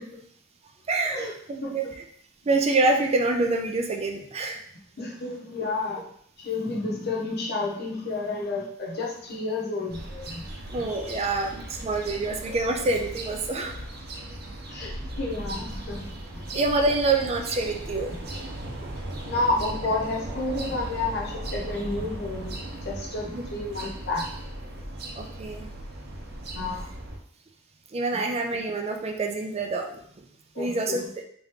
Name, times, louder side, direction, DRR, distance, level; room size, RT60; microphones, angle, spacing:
voice 1, 0.9-1.9 2.5-4.6 10.7-13.7 14.8-15.1 16.5-18.1 18.8-18.9 23.3-23.4 25.2-25.7 27.9-30.0 30.6-31.0, right 3 dB, 30° right, 3 dB, 0.4 m, -26 dB
voice 2, 1.6-1.9 5.0-6.1 6.4-10.4 14.7-16.1 16.3-16.4 19.3-24.2 26.5-26.9 30.5-31.1, left 2 dB, 55° left, -2 dB, 0.9 m, -30 dB
sound 1, 9.9-27.2, right 1 dB, 55° right, 0.8 m, -37 dB
3.6 x 2.9 x 3.6 m, 0.64 s
head